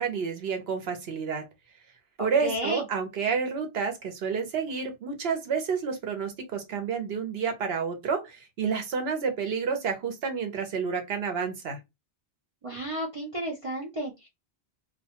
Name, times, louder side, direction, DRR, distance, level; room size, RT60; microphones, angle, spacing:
voice 1, 0.0-1.4 2.2-11.8, right 6 dB, 75° right, 1.0 m, -30 dB
voice 2, 2.2-2.8 12.6-14.3, right 1 dB, 40° right, 0.6 m, -32 dB
2.3 x 2.2 x 2.7 m
omnidirectional pair, 1.1 m